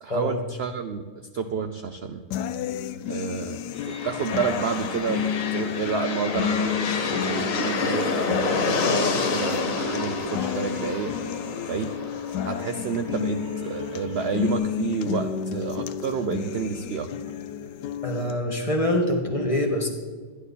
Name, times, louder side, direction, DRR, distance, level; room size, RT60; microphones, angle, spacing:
voice 1, 0.0-2.2 3.1-11.1 11.6-11.9 12.4-17.1, right 6 dB, 70° right, 7 dB, 0.6 m, -30 dB
sound 1, 2.3-18.3, left 9 dB, 90° left, 1.2 m, -31 dB
sound 2, 3.7-13.5, left 4 dB, 60° left, 1.3 m, -29 dB
sound 3, 7.2-14.6, right 2 dB, 10° right, 2.2 m, -41 dB
voice 2, 18.0-19.9, left 1 dB, 20° left, 2 dB, 1.5 m, -24 dB
12.5 x 10.5 x 4.1 m, 1.4 s
omnidirectional pair, 1.7 m